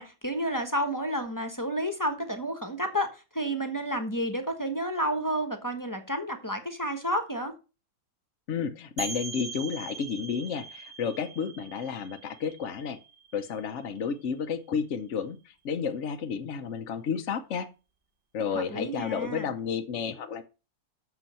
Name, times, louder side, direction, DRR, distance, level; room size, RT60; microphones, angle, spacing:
voice 1, 0.0-7.5 18.5-19.5, equal, 15° left, 1.0 m, -31 dB
voice 2, 8.5-13.0 13.3-17.7 18.3-20.4, left 6 dB, 55° left, 0.8 m, -32 dB
sound 1, 9.0-14.5, right 6 dB, 30° right, 1.2 m, -42 dB
8.1 x 6.9 x 5.6 m
omnidirectional pair, 2.1 m